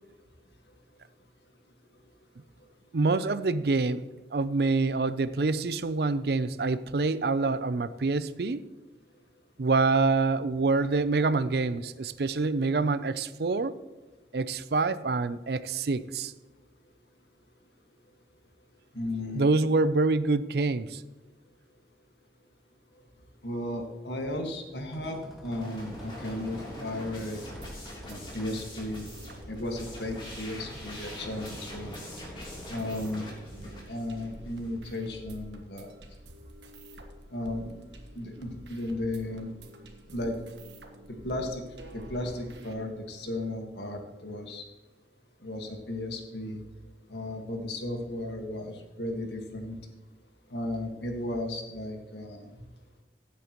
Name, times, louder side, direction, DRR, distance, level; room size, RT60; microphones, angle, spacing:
voice 1, 2.9-4.1 4.3-8.6 9.6-13.7 14.3-16.3 19.3-21.0, right 3 dB, 65° right, 15 dB, 0.5 m, -26 dB
voice 2, 18.9-19.5 23.4-25.2 25.4-27.4 28.1-29.1 29.5-31.9 32.7-33.3 33.6-35.9 37.3-37.7 38.2-39.5 40.1-40.3 41.2-41.6 41.9-44.6 45.4-46.6 47.1-49.8 50.5-52.4, left 1 dB, 80° left, 3 dB, 1.8 m, -35 dB
sound 1, 24.7-33.3, equal, ahead, 1.7 m, -47 dB
sound 2, 25.5-34.8, left 1 dB, 30° left, 3.2 m, -44 dB
sound 3, 27.4-42.7, right 1 dB, 85° right, 1.4 m, -48 dB
16.0 x 8.4 x 3.0 m, 1.2 s
head